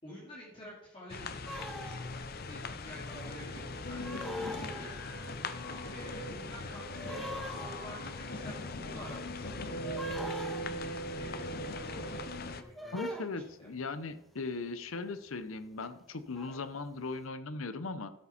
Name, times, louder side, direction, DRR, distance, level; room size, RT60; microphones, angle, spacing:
voice 1, 0.0-13.2 13.6-13.7, equal, 25° left, -6 dB, 2.5 m, -50 dB
sound 1, 1.1-12.6, left 4 dB, 45° left, 0.6 m, -42 dB
sound 2, 1.5-2.3 3.1-3.5 4.0-5.3 5.5-6.5 6.9-14.0 14.9-15.3 15.6-17.0, equal, ahead, 1.1 m, -44 dB
sound 3, 3.1-12.6, right 1 dB, 65° left, 2.0 m, -42 dB
voice 2, 12.9-18.1, left 3 dB, 85° left, 11 dB, 0.9 m, -38 dB
12.5 x 7.1 x 4.3 m, 0.86 s
head